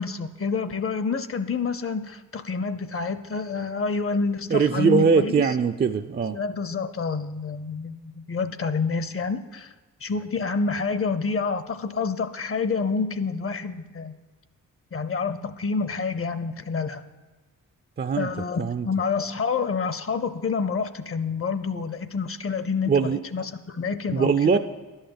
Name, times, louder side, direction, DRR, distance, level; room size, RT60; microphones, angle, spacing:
voice 1, 0.0-5.6 6.3-9.7 10.0-14.1 14.9-17.0 18.2-24.6, left 4 dB, 40° left, 12 dB, 0.7 m, -28 dB
voice 2, 4.5-6.4 18.0-18.3 18.6-18.9 22.9-23.2 24.1-24.6, right 5 dB, 30° right, 9 dB, 0.4 m, -21 dB
11.5 x 5.7 x 8.7 m, 1.3 s
cardioid pair, 75°, 34 cm